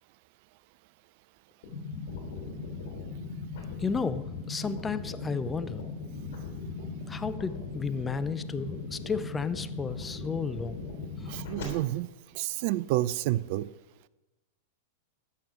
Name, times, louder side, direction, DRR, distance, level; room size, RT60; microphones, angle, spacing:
sound 1, 1.6-11.6, left 4 dB, 65° left, 3.5 m, -38 dB
voice 1, 3.8-5.8 7.1-10.8 11.2-11.3, left 4 dB, 15° left, 12 dB, 0.6 m, -33 dB
voice 2, 11.3-12.1 12.3-13.7, right 15 dB, 55° right, 18 dB, 0.5 m, -29 dB
13.0 x 8.5 x 5.0 m, 1.0 s
hypercardioid pair, 100°, 0 cm